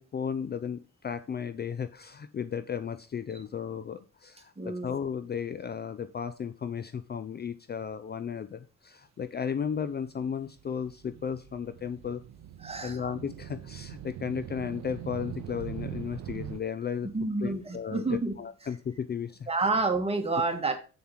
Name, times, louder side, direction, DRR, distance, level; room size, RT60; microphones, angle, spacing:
voice 1, 0.0-12.2 12.8-17.1 17.4-19.5, left 7 dB, 35° left, 12 dB, 0.5 m, -35 dB
voice 2, 4.6-4.9 12.6-13.0 17.1-18.3 19.5-20.8, right 3 dB, 20° right, 4 dB, 1.8 m, -29 dB
sound 1, 10.1-16.6, right 11 dB, 65° right, 0.6 m, -42 dB
7.3 x 4.6 x 5.8 m, 0.36 s
cardioid pair, 90°, 30 cm